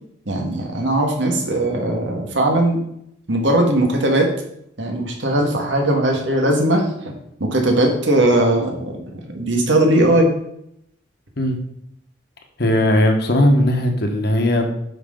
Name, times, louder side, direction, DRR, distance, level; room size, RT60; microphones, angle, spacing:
voice 1, 0.2-2.8 3.3-4.3 4.8-7.1 7.4-10.3, right 1 dB, 70° right, 2 dB, 1.8 m, -19 dB
voice 2, 12.6-14.7, left 1 dB, 55° left, 3 dB, 1.4 m, -17 dB
9.4 x 5.9 x 3.9 m, 0.75 s
head